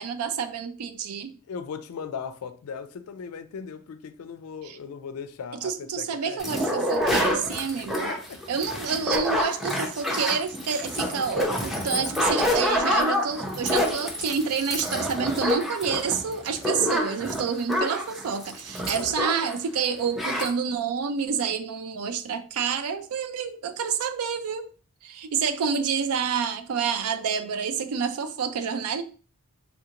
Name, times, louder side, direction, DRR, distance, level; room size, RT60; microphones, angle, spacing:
voice 1, 0.0-1.3 4.6-4.8 5.5-8.1 8.5-24.7 25.0-29.0, right 6 dB, 85° right, 0.4 m, -28 dB
voice 2, 1.5-6.7 7.8-8.4, left 6 dB, 80° left, 0.4 m, -38 dB
sound 1, 6.4-19.6 19.8-19.9 20.2-20.5, left 1 dB, ahead, 0.6 m, -27 dB
3.5 x 2.4 x 2.8 m
head